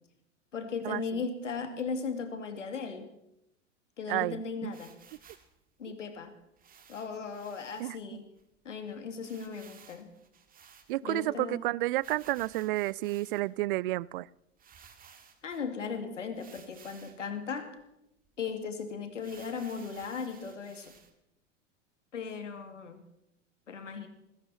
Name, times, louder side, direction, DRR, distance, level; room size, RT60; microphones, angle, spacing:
voice 1, 0.5-3.1 4.0-4.9 5.8-6.3 6.9-8.3 8.6-10.1 11.0-11.6 15.4-17.8 18.4-20.9 22.1-23.0 23.7-24.1, left 5 dB, 75° left, 7 dB, 2.4 m, -37 dB
voice 2, 4.1-4.7 7.8-8.0 10.9-14.3, right 18 dB, 45° right, 25 dB, 0.4 m, -31 dB
sound 1, 4.7-5.5 6.6-7.9 8.4-8.5 8.7-8.8 9.2-11.2 11.9-13.6 14.2-14.3 14.6-15.6 16.3-17.3 17.8-17.9 18.2-18.4 19.1-21.1, right 7 dB, 25° right, 2.1 m, -56 dB
19.0 x 16.5 x 4.2 m, 0.86 s
figure-of-eight pair, 90°, 37 cm